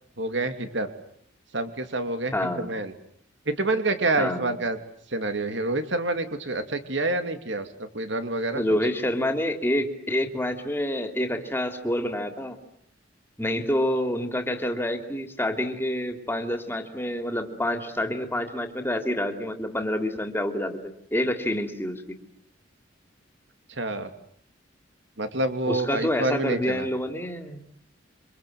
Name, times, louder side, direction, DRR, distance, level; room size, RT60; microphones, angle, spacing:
voice 1, 0.2-0.9 1.5-2.9 3.5-4.8 5.1-7.7 7.9-8.6 23.7-24.1 25.2-26.9, right 2 dB, 65° right, 8 dB, 2.9 m, -27 dB
voice 2, 2.3-2.7 4.2-4.6 8.5-12.6 13.4-22.0 25.7-27.6, left 1 dB, 10° left, 6 dB, 3.1 m, -27 dB
28.5 x 25.5 x 7.8 m, 0.67 s
head